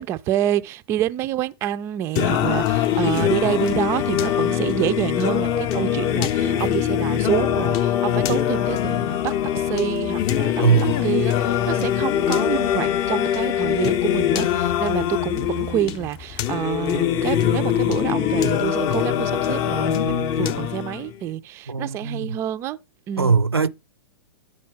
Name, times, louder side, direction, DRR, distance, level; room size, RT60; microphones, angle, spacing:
voice 1, 0.0-22.8 23.1-23.4, right 12 dB, 20° right, 0.4 m, -27 dB
Singing, 2.2-21.2, left 10 dB, 30° left, 0.6 m, -22 dB
voice 2, 10.6-11.1 21.7-22.4 23.2-23.7, right 5 dB, 85° right, 0.5 m, -20 dB
10.0 x 4.2 x 4.6 m
figure-of-eight pair, 105°, 13 cm